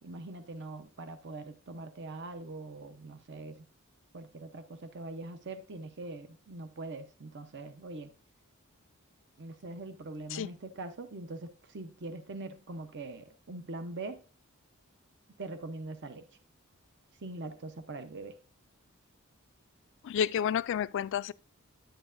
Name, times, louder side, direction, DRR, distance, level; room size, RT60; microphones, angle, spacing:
voice 1, 0.0-3.6 4.1-8.1 9.4-14.2 15.4-16.3 17.2-18.4, right 2 dB, 55° right, 0.8 m, -42 dB
voice 2, 20.0-21.3, left 8 dB, 60° left, 0.3 m, -30 dB
10.0 x 8.0 x 2.6 m
head